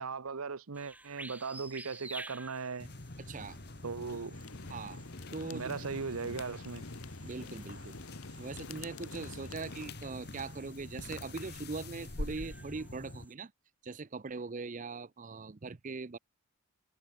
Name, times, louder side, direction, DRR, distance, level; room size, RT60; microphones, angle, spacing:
voice 1, 0.0-2.9 3.8-4.4 5.5-6.8, right 4 dB, 80° right, 0.9 m, -38 dB
sound 1, 0.7-13.3, right 2 dB, 5° right, 2.6 m, -53 dB
sound 2, 2.8-13.2, left 2 dB, 45° left, 1.7 m, -45 dB
voice 2, 3.3-3.6 4.1-4.2 4.7-5.0 5.3-5.8 7.2-8.0 8.4-13.5 13.8-16.2, right 4 dB, 35° right, 0.5 m, -41 dB
sound 3, 4.3-9.9, left 4 dB, 75° left, 1.1 m, -50 dB
head